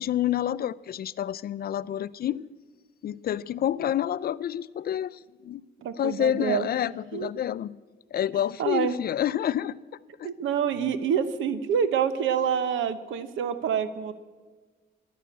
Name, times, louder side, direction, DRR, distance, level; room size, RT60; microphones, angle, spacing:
voice 1, 0.0-2.4 3.0-5.6 6.0-7.8 8.1-9.8 10.2-10.3, left 10 dB, 50° left, 0.4 m, -28 dB
voice 2, 5.8-6.7 7.1-7.3 8.6-9.0 10.2-14.1, right 8 dB, 80° right, 1.0 m, -27 dB
11.0 x 10.5 x 8.5 m
cardioid pair, 90°, 20 cm